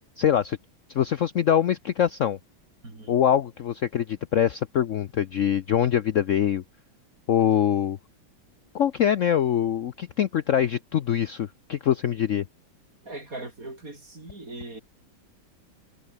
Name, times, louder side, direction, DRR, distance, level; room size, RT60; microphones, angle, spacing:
voice 1, 0.2-0.6 0.9-2.4 3.1-6.6 7.3-8.0 8.7-12.5, left 9 dB, 80° left, 0.7 m, -23 dB
voice 2, 2.8-3.2 13.0-14.8, right 2 dB, 40° right, 6.0 m, -40 dB
omnidirectional pair, 2.2 m